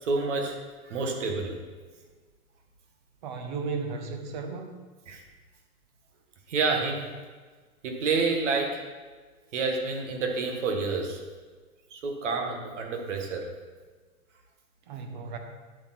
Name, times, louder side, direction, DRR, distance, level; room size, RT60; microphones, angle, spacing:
voice 1, 0.0-0.6 0.8-1.5 5.1-5.2 6.5-7.1 7.8-8.8 9.5-11.2 11.9-13.5, right 4 dB, 55° right, 2 dB, 2.0 m, -28 dB
voice 2, 3.2-4.7 14.9-15.4, right 4 dB, 30° right, 5 dB, 1.4 m, -34 dB
11.0 x 8.4 x 4.4 m, 1.4 s
hypercardioid pair, 160°, 44 cm